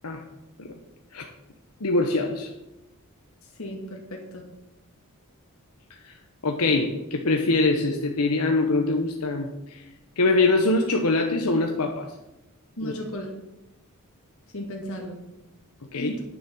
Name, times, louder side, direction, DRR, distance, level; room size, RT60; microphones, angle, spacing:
voice 1, 1.8-2.5 6.0-6.2 6.4-9.8 10.2-12.1 12.8-12.9 15.8-16.1, left 2 dB, 90° left, 3 dB, 1.0 m, -24 dB
voice 2, 3.6-4.4 6.6-6.7 12.8-13.3 14.5-15.2 16.0-16.2, equal, 70° left, 1 dB, 1.9 m, -35 dB
9.6 x 6.5 x 7.1 m, 0.94 s
head